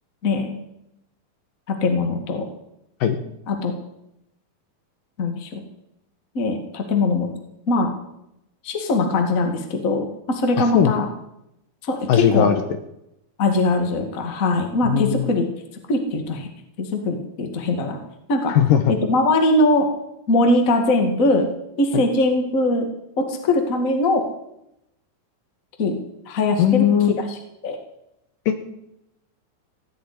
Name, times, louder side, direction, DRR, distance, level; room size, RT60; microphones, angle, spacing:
voice 1, 0.2-0.5 1.7-2.4 3.5-3.7 5.2-5.6 6.3-7.3 7.7-7.9 8.6-11.0 11.8-12.5 13.4-15.5 15.9-16.5 16.8-18.0 18.3-18.6 18.9-19.9 20.3-21.5 21.8-22.9 23.2-24.2 25.8-26.0 26.2-26.9 27.3-27.4 27.6-27.8, left 2 dB, 30° left, 5 dB, 1.6 m, -21 dB
voice 2, 12.1-12.6 14.8-15.3 18.5-18.8 21.9-22.0 26.6-27.2 28.5-28.7, left 9 dB, 70° left, 8 dB, 2.4 m, -18 dB
16.0 x 7.5 x 10.0 m, 0.84 s
omnidirectional pair, 4.5 m